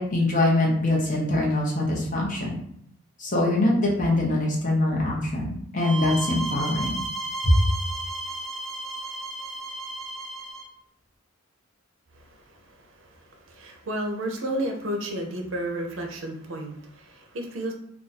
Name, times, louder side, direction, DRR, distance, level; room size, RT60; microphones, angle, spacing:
voice 1, 0.0-2.5 3.2-7.0 7.4-7.6, left 1 dB, 40° left, -2 dB, 0.8 m, -23 dB
sound 1, 5.8-10.7, right 2 dB, ahead, 0.3 m, -33 dB
voice 2, 12.1-17.7, right 1 dB, 70° right, 3 dB, 0.6 m, -32 dB
2.6 x 2.3 x 4.0 m, 0.68 s
head